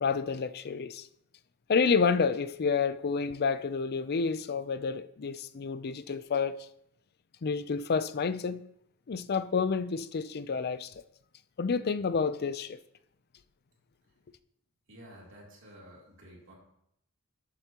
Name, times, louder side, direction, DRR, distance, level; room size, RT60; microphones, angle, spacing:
voice 1, 0.0-1.1 1.7-6.6 7.4-8.6 9.1-10.9 11.6-12.8, left 5 dB, 45° left, 0.5 m, -29 dB
voice 2, 14.9-16.5, equal, 60° right, 3.0 m, -51 dB
12.5 x 8.0 x 2.9 m
head